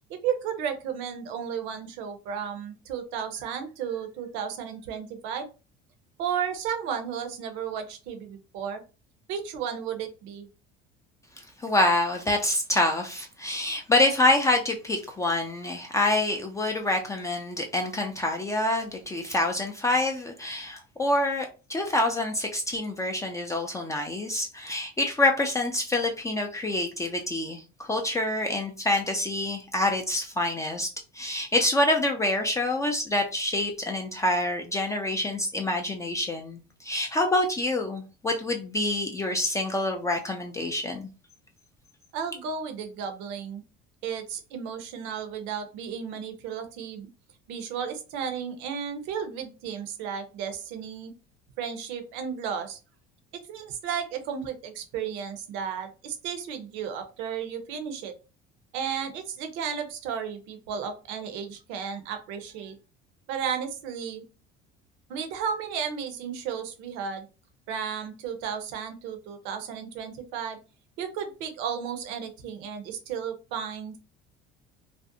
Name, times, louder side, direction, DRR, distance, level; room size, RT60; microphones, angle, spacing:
voice 1, 0.2-5.5 6.2-8.8 9.3-10.5 42.1-43.6 44.0-47.1 47.5-51.1 51.6-52.8 53.5-58.1 58.7-62.8 63.3-64.2 65.1-67.3 67.7-70.6 71.0-74.0, right 7 dB, 75° right, 7 dB, 0.7 m, -33 dB
voice 2, 11.6-30.9 31.1-41.1, left 1 dB, 15° left, 3 dB, 0.4 m, -26 dB
2.5 x 2.0 x 2.6 m, 0.32 s
supercardioid pair, 115°, 20 cm